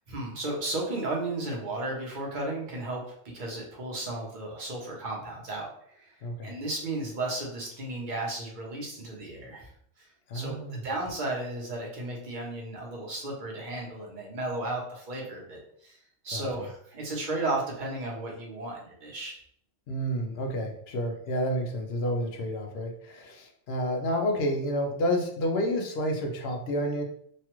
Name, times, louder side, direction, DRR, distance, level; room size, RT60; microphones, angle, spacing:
voice 1, 0.1-5.7 5.9-6.1 6.4-9.7 10.0-10.1 10.3-16.0 16.2-19.4, right 2 dB, 45° right, -1 dB, 0.9 m, -34 dB
voice 2, 6.2-6.5 10.3-10.8 16.3-16.5 19.9-27.0, equal, 60° left, 3 dB, 0.7 m, -30 dB
3.1 x 2.3 x 2.9 m, 0.66 s
omnidirectional pair, 1.3 m